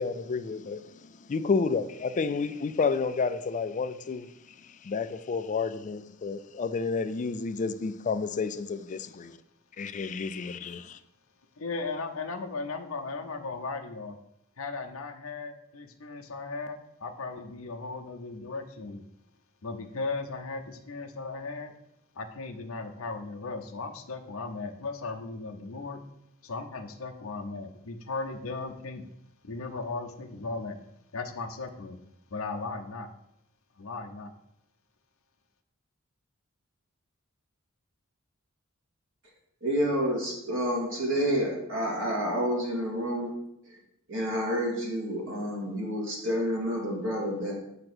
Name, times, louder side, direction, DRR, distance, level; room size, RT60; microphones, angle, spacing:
voice 1, 0.0-4.3 4.6-9.4 9.8-11.0, left 4 dB, 35° left, 0.4 m, -30 dB
voice 2, 11.6-14.2 14.6-19.0 19.6-21.7 22.1-26.0 26.4-29.1 29.4-30.8 31.1-32.0 32.3-33.1 33.8-34.3, left 3 dB, 80° left, 0.7 m, -36 dB
voice 3, 39.6-43.3 44.1-47.5, equal, 65° right, 2.1 m, -29 dB
7.6 x 2.9 x 6.1 m
head